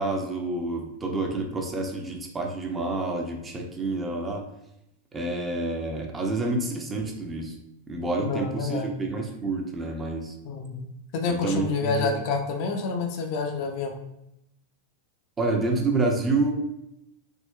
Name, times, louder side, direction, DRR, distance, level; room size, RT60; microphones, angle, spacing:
voice 1, 0.0-4.4 5.1-7.5 7.9-10.3 11.4-12.2 15.4-16.5, right 2 dB, 15° right, 1 dB, 0.4 m, -28 dB
voice 2, 8.2-8.9 10.4-10.9 11.1-14.0, left 4 dB, 45° left, 3 dB, 0.4 m, -28 dB
3.6 x 2.0 x 2.2 m, 0.85 s
figure-of-eight pair, 90°, 0 cm